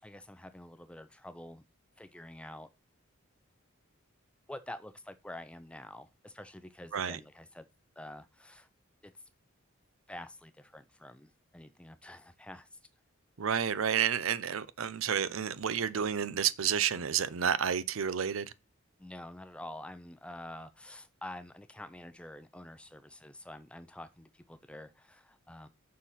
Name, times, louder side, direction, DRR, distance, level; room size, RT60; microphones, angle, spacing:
voice 1, 0.0-1.6 2.0-2.7 4.5-7.6 8.0-8.7 9.0-9.1 10.1-12.8 19.0-25.7, left 1 dB, 5° left, 0.5 m, -47 dB
voice 2, 13.4-18.5, right 8 dB, 75° right, 0.6 m, -30 dB
6.5 x 4.1 x 5.7 m
head